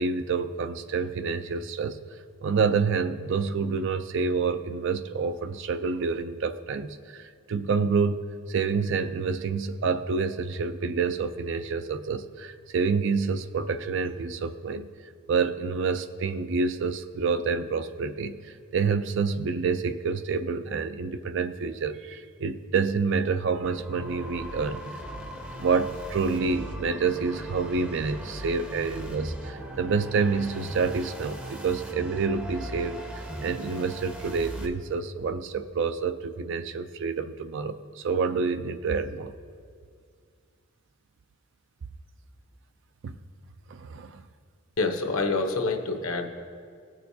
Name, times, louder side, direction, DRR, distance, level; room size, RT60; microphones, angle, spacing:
voice 1, 0.0-2.0 2.4-14.9 15.3-25.1 25.5-33.0 33.4-39.3 43.0-43.2 43.7-44.2, right 5 dB, 55° right, 10 dB, 0.4 m, -28 dB
sound 1, 23.6-34.7, right 1 dB, 5° right, 0.6 m, -39 dB
voice 2, 44.8-46.3, left 3 dB, 70° left, 4 dB, 0.9 m, -27 dB
17.5 x 6.5 x 2.7 m, 2.1 s
head